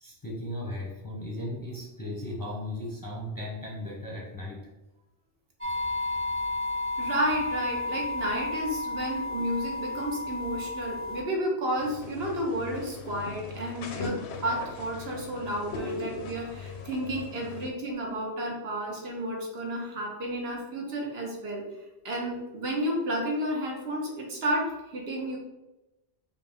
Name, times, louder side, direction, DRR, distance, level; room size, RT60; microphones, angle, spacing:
voice 1, 0.0-4.7, left 1 dB, 20° left, -4 dB, 0.6 m, -36 dB
sound 1, 5.6-11.2, left 2 dB, 15° right, 0.5 m, -32 dB
voice 2, 7.0-21.6 22.0-25.4, right 1 dB, 65° right, -1 dB, 1.1 m, -31 dB
sound 2, 11.8-17.7, left 4 dB, 75° left, 0.8 m, -39 dB
5.1 x 2.2 x 3.5 m, 0.99 s
omnidirectional pair, 1.1 m